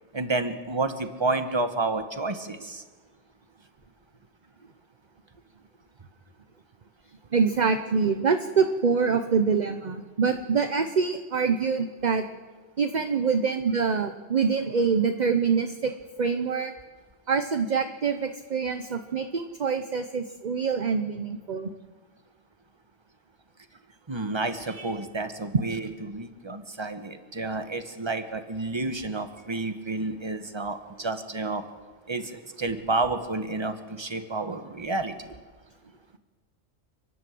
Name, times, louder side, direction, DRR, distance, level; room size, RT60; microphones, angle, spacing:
voice 1, 0.1-2.8 24.1-31.6 32.1-35.3, right 3 dB, 25° right, 8 dB, 1.3 m, -30 dB
voice 2, 7.3-12.2 12.8-15.9 16.2-16.7 17.3-21.7, right 5 dB, 45° right, 8 dB, 0.9 m, -25 dB
30.0 x 11.0 x 7.8 m, 1.4 s
omnidirectional pair, 1.1 m